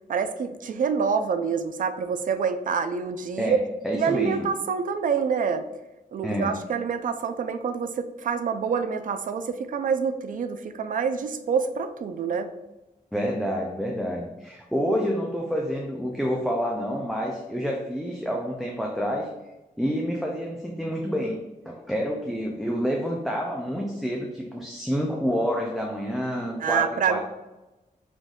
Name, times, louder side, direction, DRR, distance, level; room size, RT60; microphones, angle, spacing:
voice 1, 0.1-3.6 3.9-5.6 6.1-12.5 26.6-27.2, right 6 dB, 65° right, 10 dB, 0.4 m, -26 dB
voice 2, 3.8-4.5 6.2-6.6 13.1-19.3 19.8-21.4 21.7-27.2, equal, ahead, -1 dB, 0.5 m, -28 dB
5.1 x 2.6 x 3.7 m, 1.0 s
wide cardioid pair, 140°, 15 cm